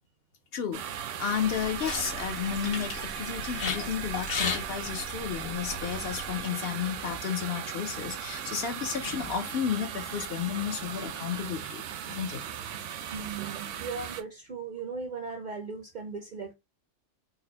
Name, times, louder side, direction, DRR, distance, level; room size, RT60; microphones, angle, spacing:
voice 1, 0.5-12.4, left 8 dB, 60° left, 0.7 m, -32 dB
sound 1, 0.7-14.2, right 9 dB, 75° right, 0.9 m, -38 dB
sound 2, 1.4-6.4, left 4 dB, 85° left, 1.5 m, -37 dB
sound 3, 6.3-11.2, left 1 dB, 30° left, 0.5 m, -51 dB
voice 2, 13.1-16.5, right 4 dB, 55° right, 0.5 m, -38 dB
4.0 x 2.1 x 3.8 m
omnidirectional pair, 1.3 m